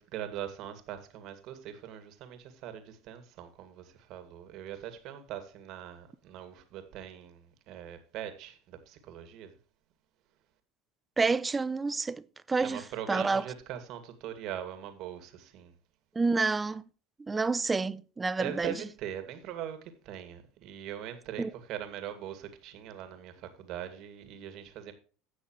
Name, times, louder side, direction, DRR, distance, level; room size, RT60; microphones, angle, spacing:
voice 1, 0.0-9.6 12.6-15.8 18.4-24.9, right 10 dB, 60° right, 2.3 m, -41 dB
voice 2, 11.2-12.8 13.1-13.4 16.2-16.8 17.2-18.7 21.4-21.5, right 4 dB, 20° right, 0.5 m, -29 dB
16.5 x 6.3 x 3.2 m
supercardioid pair, 95°, 0 cm